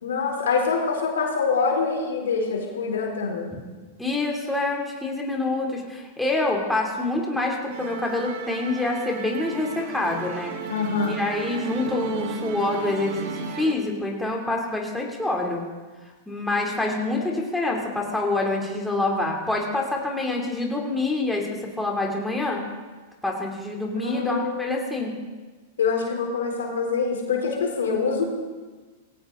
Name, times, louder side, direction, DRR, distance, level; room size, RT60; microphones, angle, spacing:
voice 1, 0.0-3.5 10.7-11.2 17.2-17.3 23.9-25.0 25.8-28.2, left 5 dB, 80° left, 1 dB, 3.6 m, -25 dB
voice 2, 4.0-10.5 11.1-15.6 16.3-21.5 21.8-22.6 23.2-25.1, left 2 dB, 5° left, -1 dB, 3.2 m, -26 dB
Musical instrument, 7.7-13.7, right 6 dB, 60° right, 2.0 m, -35 dB
18.5 x 17.0 x 4.0 m, 1.3 s
hypercardioid pair, 110°, 0 cm